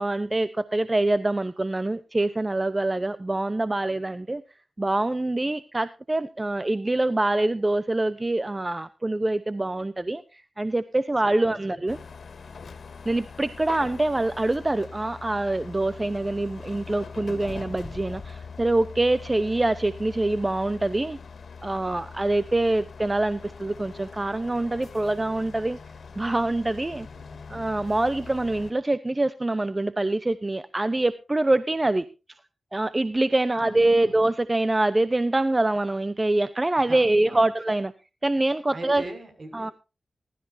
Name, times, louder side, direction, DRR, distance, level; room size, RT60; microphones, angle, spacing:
voice 1, 0.0-4.4 4.8-12.0 13.1-21.2 21.6-25.8 26.2-27.1 27.5-32.0 32.7-37.9 38.2-39.0 39.5-39.7, right 2 dB, 25° right, 13 dB, 0.8 m, -25 dB
voice 2, 11.2-11.8 26.9-27.4 33.6-34.2 36.8-37.4 38.7-39.7, right 2 dB, 55° right, 6 dB, 6.0 m, -42 dB
sound 1, 11.9-28.7, left 5 dB, 70° left, 2.0 m, -42 dB
20.0 x 13.0 x 2.7 m, 0.31 s
cardioid pair, 60°, 0 cm